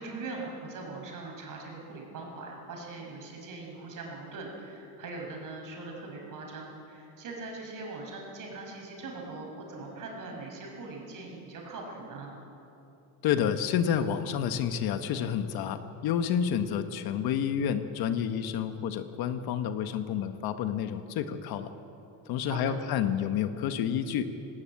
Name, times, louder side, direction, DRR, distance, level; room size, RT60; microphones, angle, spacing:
voice 1, 0.0-12.3 22.4-22.8, right 3 dB, 50° right, 0 dB, 6.2 m, -41 dB
voice 2, 13.2-21.7 22.3-24.2, left 8 dB, 60° left, 9 dB, 1.3 m, -29 dB
19.0 x 18.5 x 8.7 m, 2.9 s
cardioid pair, 135°, 42 cm